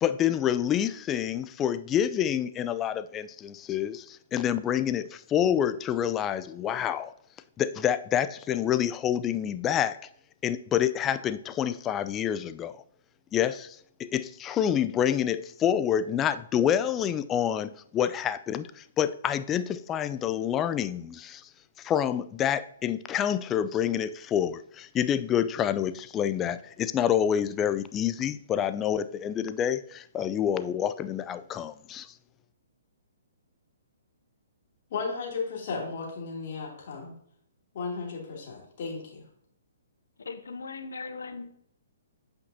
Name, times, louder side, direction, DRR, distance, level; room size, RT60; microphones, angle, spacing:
voice 1, 0.0-7.1 7.6-10.0 10.4-12.8 13.3-21.5 21.8-32.1, left 9 dB, 20° left, 0.3 m, -27 dB
voice 2, 34.9-37.1 37.7-39.2, left 4 dB, 50° left, 2.6 m, -34 dB
voice 3, 40.2-41.5, left 4 dB, 80° left, 0.9 m, -39 dB
8.3 x 5.2 x 2.7 m
hypercardioid pair, 135°, 0 cm